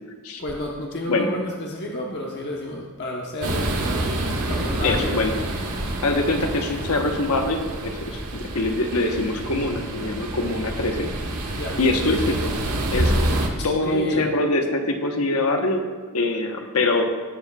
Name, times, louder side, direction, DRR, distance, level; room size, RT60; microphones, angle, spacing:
voice 1, 0.4-4.1 4.5-5.2 11.5-11.8 13.6-14.3, left 1 dB, 50° left, -2 dB, 1.0 m, -31 dB
sound 1, 3.4-13.5, right 1 dB, 85° right, 1.4 m, -27 dB
voice 2, 4.8-5.3 6.0-11.1 11.8-12.5 12.9-13.2 13.6-15.8 16.1-17.0, left 2 dB, 75° left, 4 dB, 1.1 m, -23 dB
18.5 x 7.4 x 2.4 m, 1.4 s
head